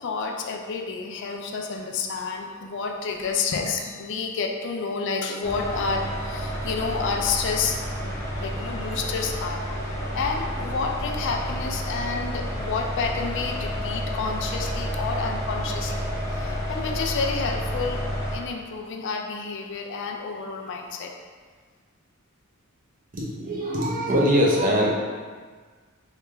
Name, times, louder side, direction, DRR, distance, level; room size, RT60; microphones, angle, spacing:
voice 1, 0.0-7.8 8.0-18.0 18.3-21.1, left 4 dB, 60° left, 2 dB, 0.4 m, -30 dB
sound 1, 5.4-18.4, equal, 15° left, 0.7 m, -30 dB
voice 2, 23.1-24.9, equal, 40° right, -3 dB, 0.7 m, -22 dB
3.2 x 2.9 x 3.3 m, 1.5 s
head